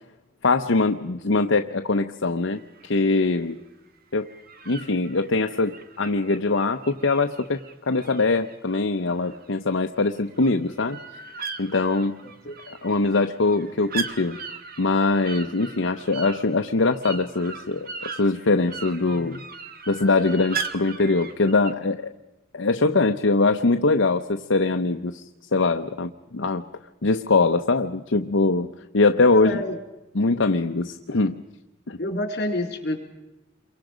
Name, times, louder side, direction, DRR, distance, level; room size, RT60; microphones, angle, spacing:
voice 1, 0.4-3.6 4.1-4.3 4.7-11.0 11.6-12.2 12.7-14.4 14.8-19.4 19.9-22.1 22.5-25.2 25.5-26.6 27.0-28.7 28.9-29.6 30.1-31.4 31.9-32.0, left 3 dB, 75° left, 6 dB, 0.8 m, -22 dB
sound 1, 2.5-3.2 4.2-9.5 9.8-21.7, right 5 dB, 50° right, 1.6 m, -38 dB
voice 2, 12.2-12.6 29.3-29.8 32.0-33.0, left 1 dB, 55° left, 5 dB, 3.7 m, -28 dB
28.0 x 23.5 x 5.1 m, 1.1 s
head